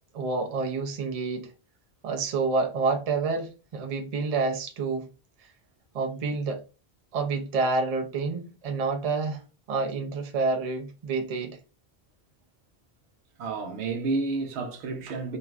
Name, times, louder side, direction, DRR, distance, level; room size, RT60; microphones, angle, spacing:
voice 1, 0.1-1.5 2.0-5.1 5.9-6.6 7.1-9.4 9.7-11.6, right 4 dB, 45° right, 0.5 m, -28 dB
voice 2, 13.4-15.4, right 3 dB, 85° right, 0.9 m, -30 dB
3.0 x 2.5 x 2.3 m
omnidirectional pair, 1.1 m